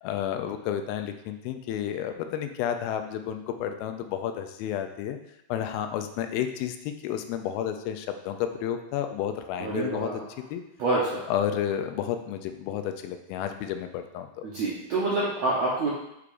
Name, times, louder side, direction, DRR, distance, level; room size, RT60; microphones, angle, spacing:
voice 1, 0.0-5.2 5.5-10.1 10.5-10.6 11.3-14.3, left 10 dB, 85° left, 7 dB, 2.4 m, -31 dB
voice 2, 9.6-10.2 10.8-11.2 14.4-15.9, right 2 dB, 75° right, -6 dB, 1.6 m, -27 dB
8.4 x 4.8 x 2.5 m, 0.82 s
omnidirectional pair, 4.3 m